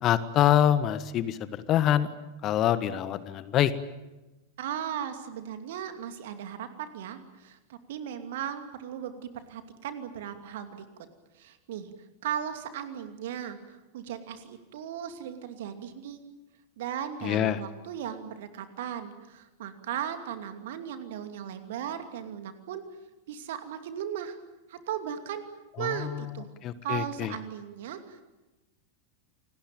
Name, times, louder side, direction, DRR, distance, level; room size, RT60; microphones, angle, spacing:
voice 1, 0.0-2.1 2.4-3.7 17.2-17.6 25.8-26.3 26.6-27.3, left 11 dB, 35° left, 14 dB, 1.3 m, -25 dB
voice 2, 4.6-10.8 11.3-11.9 12.2-16.2 16.8-22.8 23.3-24.4 24.7-25.4 25.8-26.5 26.8-28.2, right 9 dB, 55° right, 8 dB, 2.6 m, -37 dB
28.0 x 19.0 x 9.1 m, 1.1 s
figure-of-eight pair, 90°, 0 cm